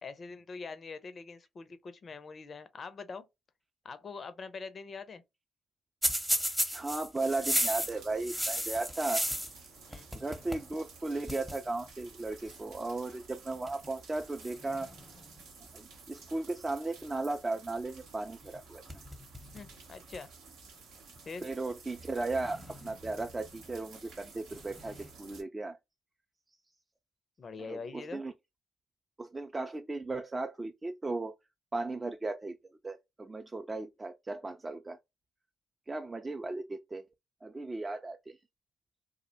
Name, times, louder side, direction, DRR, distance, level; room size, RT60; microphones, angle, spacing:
voice 1, 0.0-3.3 3.8-5.2 9.9-10.1 19.5-20.3 21.3-21.5 27.4-28.2, left 4 dB, 50° left, 0.4 m, -44 dB
sound 1, 6.0-9.7 9.9-10.7 10.9-11.0 11.3-11.6 12.5-12.7 13.5-13.9 14.4-15.5 18.4-18.6 18.9-19.7 20.1-20.2 21.2-21.3 22.4-23.3 24.5-25.1, equal, 5° right, 0.7 m, -34 dB
voice 2, 6.7-9.2 10.1-14.9 15.7-18.8 21.4-25.8 27.7-28.3 29.2-31.3 31.7-35.0 35.9-37.0 37.4-38.4, right 2 dB, 25° right, 0.4 m, -36 dB
sound 2, 7.2-25.4, right 4 dB, 75° right, 0.7 m, -53 dB
2.3 x 2.1 x 2.7 m
hypercardioid pair, 45°, 0 cm